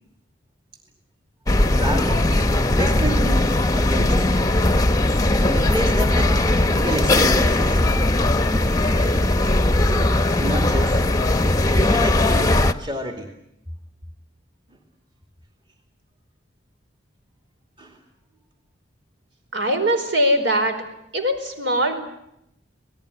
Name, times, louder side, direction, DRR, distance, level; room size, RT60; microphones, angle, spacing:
sound 1, 1.5-12.7, left 1 dB, 20° left, 0.9 m, -19 dB
voice 1, 1.7-3.5 3.8-4.4 5.5-6.4 6.7-7.8 9.9-10.0 10.4-11.0 11.8-13.3 17.8-18.0, right 1 dB, 25° right, 4 dB, 2.5 m, -29 dB
voice 2, 19.5-20.8 21.1-21.9, equal, 65° right, 7 dB, 4.8 m, -21 dB
27.5 x 19.0 x 9.8 m, 0.80 s
head